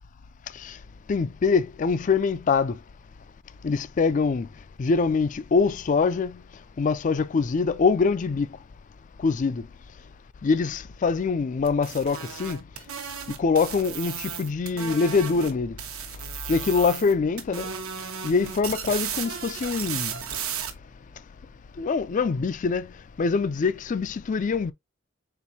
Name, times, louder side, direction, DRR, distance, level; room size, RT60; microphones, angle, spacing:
voice 1, 1.1-2.8 3.6-4.5 4.8-6.4 6.8-8.5 9.2-9.7 10.4-12.6 13.4-15.8 16.5-17.7 18.2-20.1 21.8-22.9 23.2-24.7, left 4 dB, 35° left, 0.3 m, -24 dB
sound 1, 11.6-15.5 15.8-17.1 17.4-20.7, right 7 dB, 80° right, 1.0 m, -34 dB
4.5 x 3.8 x 2.7 m
head